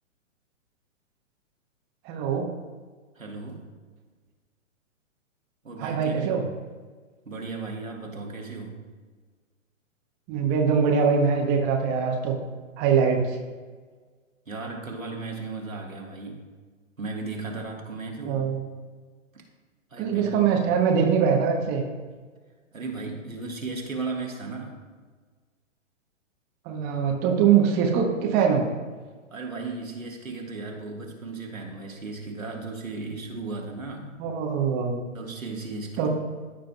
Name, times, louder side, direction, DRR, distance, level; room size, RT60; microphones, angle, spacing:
voice 1, 2.0-2.5 5.8-6.4 10.3-12.4 12.8-13.4 18.2-18.6 20.0-21.8 26.7-28.7 34.2-35.0 36.0-36.1, right 6 dB, 25° right, 1 dB, 0.9 m, -23 dB
voice 2, 3.1-3.7 5.6-6.5 7.2-8.8 14.4-16.4 17.0-18.5 19.9-20.5 22.7-24.8 29.3-34.1 35.1-36.1, right 3 dB, 85° right, 0 dB, 1.7 m, -35 dB
14.5 x 5.0 x 2.3 m, 1.4 s
figure-of-eight pair, 120°, 39 cm